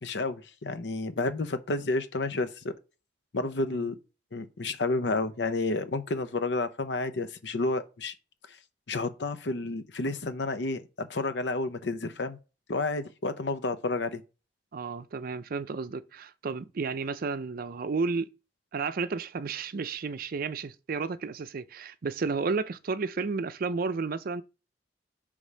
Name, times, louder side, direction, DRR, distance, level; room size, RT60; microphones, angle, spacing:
voice 1, 0.0-2.7 3.3-4.0 4.3-8.1 8.9-12.4 12.7-14.2, left 2 dB, 70° left, 0.7 m, -30 dB
voice 2, 14.7-18.3 18.7-24.4, right 4 dB, 55° right, 0.5 m, -32 dB
5.0 x 3.5 x 5.4 m
head